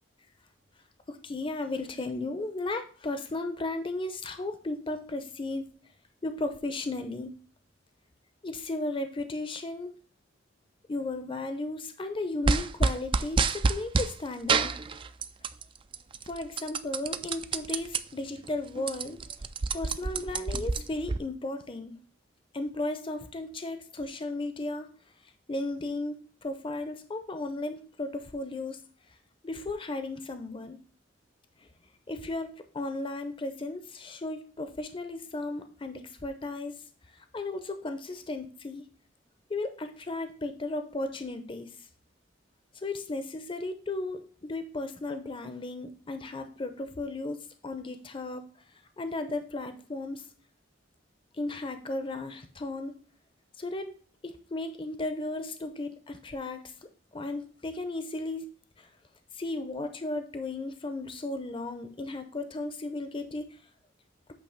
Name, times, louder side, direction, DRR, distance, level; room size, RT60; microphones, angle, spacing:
voice 1, 1.1-5.7 6.2-7.3 8.4-9.9 10.9-14.7 16.3-19.2 19.7-21.9 22.5-24.9 25.5-26.2 26.4-28.8 29.4-30.8 32.1-36.7 37.3-38.8 39.5-41.7 42.7-48.4 49.0-50.2 51.3-53.0 53.6-53.9 54.2-56.7 57.1-58.5 58.8-58.9 59.3-63.4, left 2 dB, 30° left, 8 dB, 0.6 m, -35 dB
sound 1, 12.4-14.1 14.5-15.6 15.9-18.0 18.4-18.5 18.7-21.2, right 4 dB, 25° right, 0.4 m, -27 dB
8.7 x 2.9 x 5.8 m, 0.41 s
head